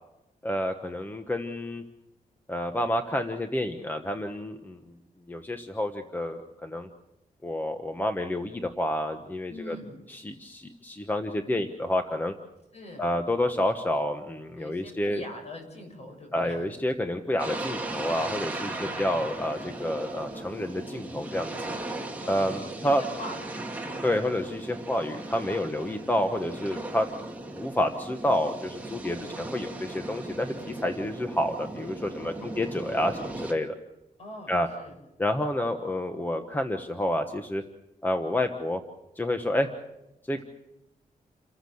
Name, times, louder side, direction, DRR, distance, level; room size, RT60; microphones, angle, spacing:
voice 1, 0.4-1.8 2.5-4.8 5.3-6.9 7.4-9.8 10.1-12.3 13.0-15.2 16.3-21.8 22.3-23.0 24.0-27.2 27.5-33.7 34.5-34.7 35.2-37.6 38.0-38.8 39.2-39.7 40.3-40.4, left 1 dB, 15° left, 6 dB, 1.1 m, -29 dB
voice 2, 9.5-9.9 12.7-13.1 14.6-16.7 18.7-19.1 22.2-24.1 25.8-26.0 29.1-29.5 32.2-32.6 34.2-35.0, equal, 50° left, 3 dB, 7.3 m, -44 dB
sound 1, 17.4-33.5, right 2 dB, 10° right, 2.4 m, -37 dB
29.0 x 14.0 x 7.9 m, 0.93 s
wide cardioid pair, 160°, 14 cm